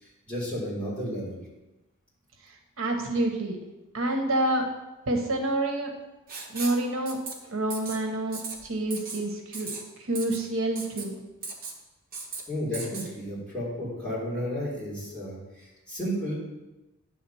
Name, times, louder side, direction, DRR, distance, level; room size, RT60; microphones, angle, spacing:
voice 1, 0.3-1.4 12.5-16.3, equal, 5° left, -8 dB, 3.5 m, -32 dB
voice 2, 2.8-3.6 3.9-4.6 5.1-5.9 6.5-7.2 7.4-9.7 10.0-11.2, right 1 dB, 75° right, 3 dB, 1.1 m, -28 dB
Writing, 6.3-6.8 7.1-7.3 7.7-8.0 8.3-8.5 8.9-9.2 9.5-9.8 10.1-10.4 10.8-11.0 11.4-11.8 12.1-12.4 12.7-13.1, right 4 dB, 40° right, 1.4 m, -36 dB
10.5 x 3.7 x 7.0 m, 1.0 s
head